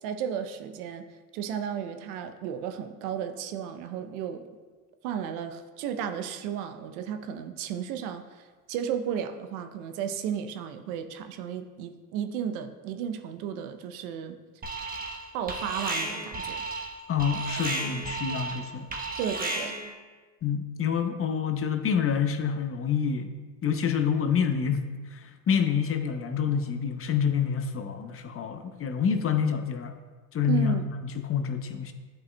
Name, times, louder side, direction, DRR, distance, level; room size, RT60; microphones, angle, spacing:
voice 1, 0.0-1.1 1.3-4.5 5.0-14.4 15.3-16.7 19.2-19.7 30.4-30.9, right 8 dB, 70° right, 8 dB, 0.7 m, -33 dB
Alarm, 14.6-15.2 15.5-19.9, right 2 dB, 20° right, 1.2 m, -33 dB
voice 2, 17.1-18.9 20.4-23.3 23.6-30.0 30.3-30.9 31.2-31.9, left 7 dB, 30° left, 8 dB, 0.6 m, -27 dB
10.5 x 5.5 x 2.2 m, 1.4 s
hypercardioid pair, 75°, 45 cm